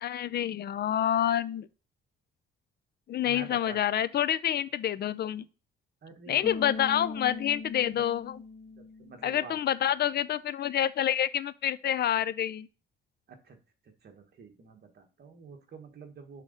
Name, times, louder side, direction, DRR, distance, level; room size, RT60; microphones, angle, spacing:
voice 1, 0.0-1.7 3.1-5.4 6.3-8.4 9.2-12.7, left 10 dB, 55° left, 0.5 m, -28 dB
voice 2, 3.2-3.8 6.0-6.7 7.9-8.0 8.7-9.6 13.3-13.6 14.0-16.4, right 5 dB, 55° right, 1.5 m, -47 dB
Bass guitar, 6.4-9.6, left 4 dB, 30° left, 1.5 m, -40 dB
6.5 x 3.8 x 5.2 m
cardioid pair, 90°, 20 cm